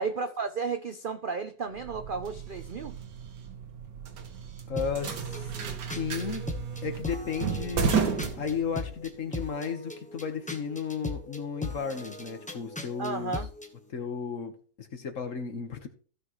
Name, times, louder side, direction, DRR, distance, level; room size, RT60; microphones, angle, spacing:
voice 1, 0.0-2.9 13.0-13.5, right 4 dB, 65° right, 8 dB, 0.5 m, -33 dB
sound 1, 1.8-9.1, right 6 dB, 90° right, 1.8 m, -33 dB
voice 2, 4.7-5.5 5.9-6.5 6.8-8.0 8.4-13.4 13.9-15.9, left 6 dB, 50° left, 7 dB, 1.6 m, -34 dB
sound 2, 4.8-13.7, left 2 dB, 5° left, 0.9 m, -39 dB
15.5 x 6.4 x 3.1 m, 0.41 s
omnidirectional pair, 1.8 m